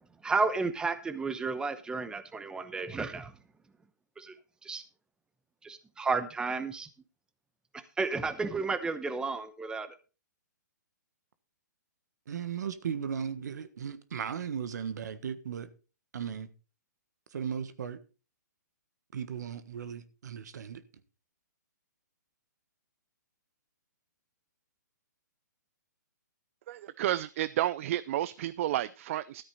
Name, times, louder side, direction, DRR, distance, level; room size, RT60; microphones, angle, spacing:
voice 1, 0.2-3.3 4.2-4.3 4.6-4.8 5.6-6.9 8.0-9.9, right 4 dB, 10° right, 0.9 m, -32 dB
voice 2, 12.3-15.7 16.1-16.5 17.3-18.0 19.1-20.8, right 7 dB, 65° right, 1.4 m, -36 dB
voice 3, 26.7-29.4, right 13 dB, 45° right, 0.4 m, -31 dB
13.5 x 8.7 x 4.2 m
hypercardioid pair, 130°, 10 cm